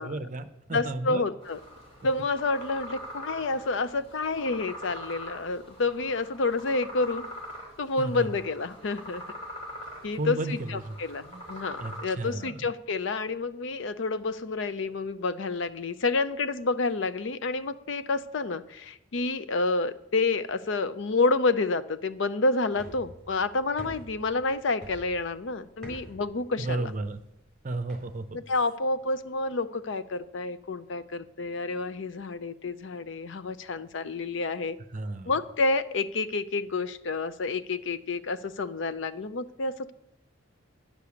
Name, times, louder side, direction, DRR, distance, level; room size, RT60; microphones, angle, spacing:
voice 1, 0.0-1.3 8.0-8.3 10.1-11.0 11.3-11.5 11.8-12.6 26.6-27.2 27.6-28.4 34.9-35.3, right 2 dB, 40° right, 10 dB, 0.6 m, -33 dB
voice 2, 0.7-1.6 2.0-7.2 7.8-9.2 10.0-26.9 28.3-34.8 35.3-39.9, left 3 dB, 65° left, 13 dB, 0.5 m, -29 dB
sound 1, 1.4-12.0, equal, 30° left, 3.1 m, -43 dB
sound 2, 22.7-28.4, right 1 dB, ahead, 3.6 m, -48 dB
10.5 x 6.7 x 7.1 m, 0.82 s
head